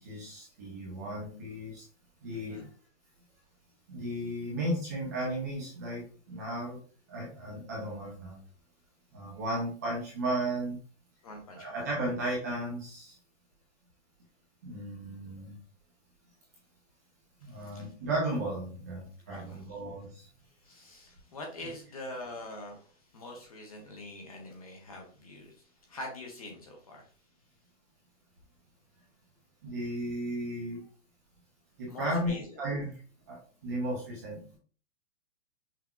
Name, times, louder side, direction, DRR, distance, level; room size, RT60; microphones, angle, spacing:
voice 1, 0.0-1.8 2.2-2.6 3.9-6.8 7.1-8.4 9.1-10.8 11.6-13.1 14.6-15.5 17.4-20.3 29.6-30.8 31.8-32.9 33.3-33.4 33.6-34.6, right 1 dB, 15° right, -5 dB, 0.6 m, -35 dB
voice 2, 2.3-2.7 11.2-11.9 17.4-17.9 19.3-19.8 20.6-27.1 31.9-32.6, left 1 dB, 30° left, 2 dB, 0.6 m, -45 dB
5.9 x 2.7 x 2.2 m, 0.42 s
hypercardioid pair, 175°, 39 cm